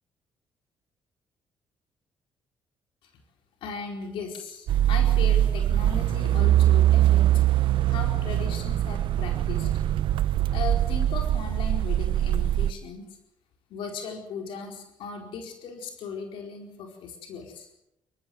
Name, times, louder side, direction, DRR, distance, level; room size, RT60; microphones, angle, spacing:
voice 1, 3.6-7.3 7.9-9.7 10.5-13.1 13.7-17.7, left 5 dB, 85° left, 2 dB, 4.4 m, -37 dB
sound 1, 4.7-12.7, right 12 dB, 75° right, 0.9 m, -22 dB
28.0 x 15.0 x 7.8 m, 0.81 s
cardioid pair, 115°, 8 cm